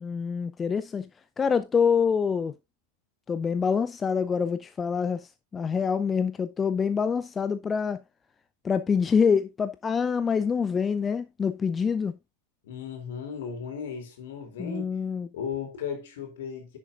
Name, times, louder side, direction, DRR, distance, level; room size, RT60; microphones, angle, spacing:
voice 1, 0.0-1.1 1.4-2.5 3.3-8.0 8.6-12.2 14.6-15.3, left 6 dB, 20° left, 0.5 m, -26 dB
voice 2, 12.6-14.9 15.3-16.8, left 6 dB, 55° left, 3.8 m, -36 dB
10.5 x 8.7 x 2.4 m
figure-of-eight pair, 90°, 0 cm